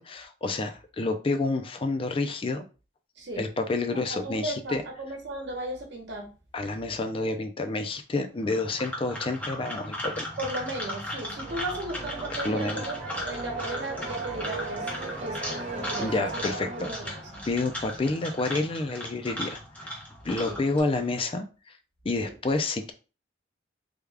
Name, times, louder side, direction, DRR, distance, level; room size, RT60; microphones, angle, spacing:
voice 1, 0.0-2.6 3.4-4.8 6.5-10.3 12.4-12.8 16.0-16.7 17.5-19.9 20.2-21.8 22.0-22.9, left 3 dB, 30° left, 7 dB, 0.4 m, -29 dB
voice 2, 3.2-3.5 4.1-6.3 10.4-16.5 16.8-17.4 20.4-20.6 22.2-22.3, right 1 dB, 70° right, 2 dB, 1.0 m, -36 dB
sound 1, 8.4-20.8, left 1 dB, 10° left, 0.9 m, -37 dB
sound 2, 10.9-18.5, right 3 dB, 35° right, 0.7 m, -38 dB
3.5 x 2.3 x 3.3 m, 0.33 s
head